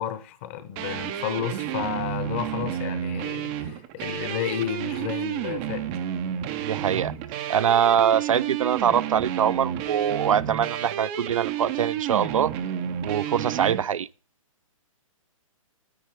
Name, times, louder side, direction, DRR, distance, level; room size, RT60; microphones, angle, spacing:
voice 1, 0.0-5.9, left 11 dB, 20° left, 0.9 m, -32 dB
sound 1, 0.8-13.8, right 10 dB, 15° right, 0.5 m, -31 dB
voice 2, 6.6-7.1 7.5-12.5 13.0-14.1, right 8 dB, 70° right, 0.5 m, -23 dB
10.5 x 9.2 x 4.8 m
hypercardioid pair, 170°, 18 cm